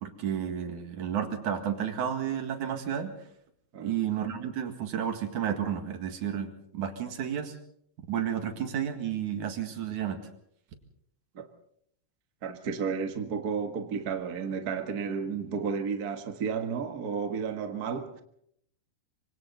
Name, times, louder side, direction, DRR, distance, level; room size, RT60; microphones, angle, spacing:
voice 1, 0.0-3.1 3.8-7.5 8.1-10.2, right 9 dB, 65° right, 3.3 m, -32 dB
voice 2, 12.4-18.2, right 6 dB, 40° right, 1.5 m, -32 dB
26.0 x 24.5 x 4.0 m
omnidirectional pair, 3.8 m